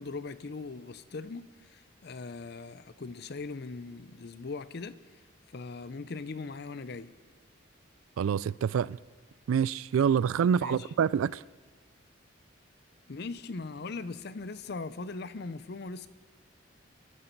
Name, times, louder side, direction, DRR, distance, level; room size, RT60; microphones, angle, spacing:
voice 1, 0.0-5.0 5.5-7.1 10.6-10.9 13.1-16.1, left 3 dB, 55° left, 0.6 m, -40 dB
voice 2, 8.2-9.0 9.5-11.4, right 7 dB, 85° right, 0.3 m, -26 dB
22.5 x 11.0 x 4.6 m
head